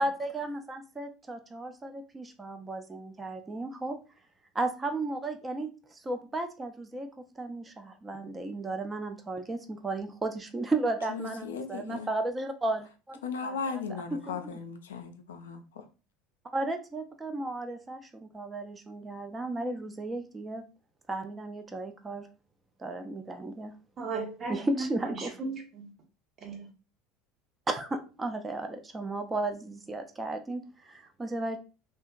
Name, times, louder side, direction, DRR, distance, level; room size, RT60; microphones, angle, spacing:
voice 1, 0.0-4.0 4.5-7.1 7.4-13.8 14.1-14.5 16.5-20.6 21.1-22.3 22.8-23.7 24.5-25.3 27.7-31.6, right 2 dB, 20° right, 0.4 m, -34 dB
voice 2, 11.1-12.1 13.2-15.6, left 5 dB, 70° left, 0.3 m, -36 dB
voice 3, 24.0-25.9 26.4-26.7, right 3 dB, 35° right, 0.7 m, -36 dB
2.8 x 2.2 x 2.4 m
figure-of-eight pair, 70°, 0 cm